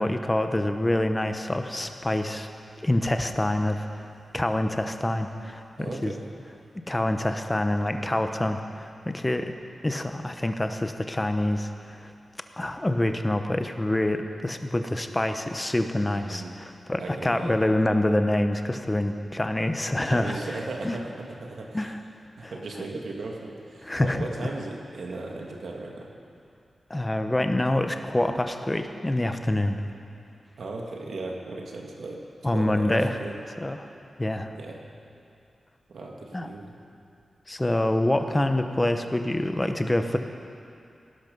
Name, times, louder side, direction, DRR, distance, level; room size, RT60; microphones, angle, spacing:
voice 1, 0.0-2.5 2.8-4.1 4.3-6.1 6.9-9.5 9.8-12.1 12.6-20.4 20.8-21.0 21.7-22.0 22.4-22.5 23.8-24.2 26.9-29.8 32.4-33.2 33.6-33.9 34.2-34.5 36.3-36.5 37.5-40.2, left 1 dB, 15° left, 7 dB, 0.9 m, -26 dB
voice 2, 5.8-6.3 16.1-16.6 17.0-17.7 20.0-21.9 22.4-26.1 30.6-32.2 32.5-33.4 34.5-34.8 35.9-36.8, right 3 dB, 80° right, 0 dB, 2.0 m, -37 dB
18.5 x 12.0 x 5.4 m, 2.5 s
wide cardioid pair, 95°, 0 cm